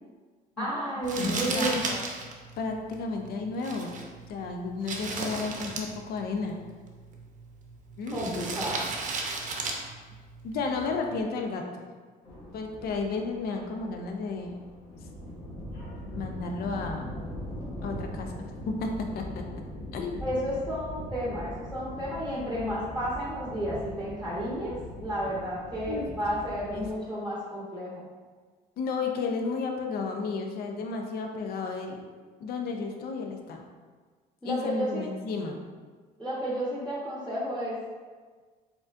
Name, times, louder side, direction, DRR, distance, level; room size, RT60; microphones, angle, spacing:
voice 1, 0.6-2.0 8.1-8.9 20.2-28.1 34.4-35.0 36.2-37.8, equal, 5° left, -7 dB, 1.0 m, -32 dB
Crumpling crinkling, 1.0-11.2, right 3 dB, 45° right, 0.7 m, -36 dB
voice 2, 1.2-1.8 2.6-4.0 4.3-6.6 8.0-8.2 10.4-11.9 12.5-14.5 16.1-17.2 17.8-19.6 19.9-20.2 25.9-26.1 26.7-26.9 28.8-32.0 32.4-33.6 34.4-35.6, left 4 dB, 65° left, 3 dB, 0.6 m, -33 dB
sound 1, 12.2-26.9, equal, 85° left, 1.2 m, -41 dB
4.9 x 3.7 x 2.5 m, 1.5 s
cardioid pair, 110°, 17 cm